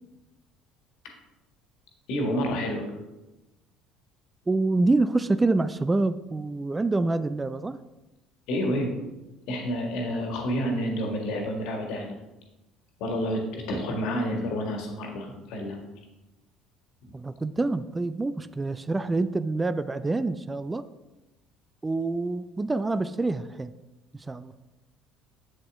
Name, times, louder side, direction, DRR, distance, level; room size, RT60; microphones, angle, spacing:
voice 1, 2.1-2.9 8.5-9.0 9.5-12.2 13.0-15.8, equal, 60° left, 2 dB, 1.7 m, -29 dB
voice 2, 4.5-7.8 17.1-20.8 21.8-23.7 24.3-24.5, right 2 dB, 20° right, 13 dB, 0.4 m, -26 dB
7.8 x 7.7 x 3.6 m, 1.0 s
figure-of-eight pair, 60°, 0 cm